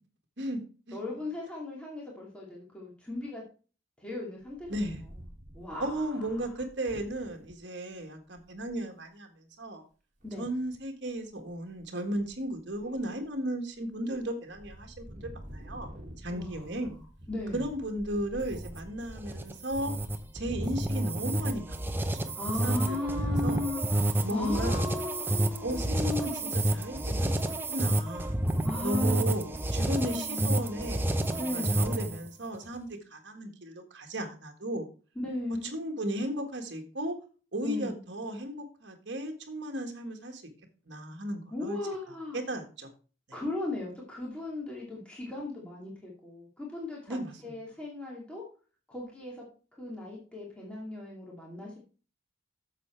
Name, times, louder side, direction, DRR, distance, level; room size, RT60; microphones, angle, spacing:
voice 1, 0.4-1.0 4.7-5.0 5.8-9.8 10.4-15.9 16.2-16.9 17.5-19.9 20.3-21.7 22.1-22.3 22.6-23.6 24.2-24.8 25.6-28.4 28.8-34.9 35.7-37.2 37.5-40.4 40.9-41.8 42.3-42.9 47.1-47.6, right 1 dB, 55° right, 4 dB, 1.6 m, -35 dB
voice 2, 0.9-3.4 4.0-4.9 5.5-5.9 10.2-10.4 12.8-13.0 16.3-16.9 17.3-17.7 22.3-26.6 28.6-29.4 30.0-31.0 31.4-31.8 35.2-35.7 37.6-38.0 41.5-42.4 43.3-47.2 47.4-48.4 48.9-49.4 49.8-51.8, left 2 dB, 5° left, -4 dB, 2.5 m, -37 dB
Wind, 4.4-7.5 8.1-8.2 8.4-8.7 10.2-10.8 11.3-11.8 12.1-13.3 13.8-14.2 14.5-22.7, equal, 35° right, 2.2 m, -48 dB
sound 1, 18.4-32.3, right 1 dB, 10° right, 0.6 m, -30 dB
8.3 x 7.1 x 4.5 m, 0.37 s
head